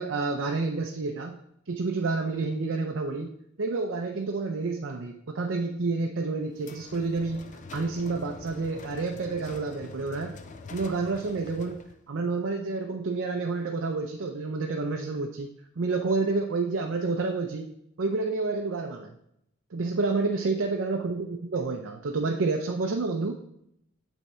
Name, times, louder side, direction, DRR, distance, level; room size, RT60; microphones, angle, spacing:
voice 1, 0.0-1.4 1.7-3.3 3.6-10.4 10.7-11.8 12.1-15.5 15.8-17.7 18.0-19.1 19.7-23.3, right 3 dB, 60° right, 3 dB, 0.5 m, -29 dB
sound 1, 6.6-12.0, left 3 dB, 35° left, 0.5 m, -45 dB
8.2 x 3.6 x 4.3 m, 0.76 s
head